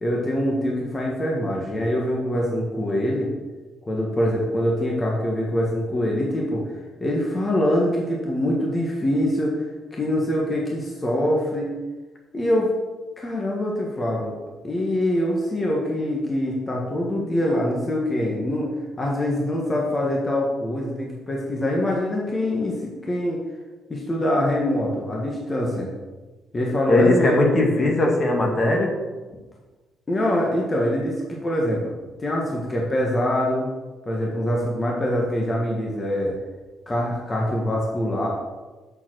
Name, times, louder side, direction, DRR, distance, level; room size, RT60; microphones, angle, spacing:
voice 1, 0.0-3.3 3.9-6.7 7.0-11.7 12.3-12.7 13.2-14.4 14.6-18.7 19.0-23.4 23.9-25.9 26.5-27.6 30.1-33.7 34.0-36.3 36.9-38.3, left 1 dB, 25° left, -2 dB, 1.6 m, -24 dB
voice 2, 26.9-28.9, left 2 dB, 40° left, 0 dB, 1.9 m, -19 dB
6.8 x 5.8 x 6.3 m, 1.3 s
cardioid pair, 90°, 0 cm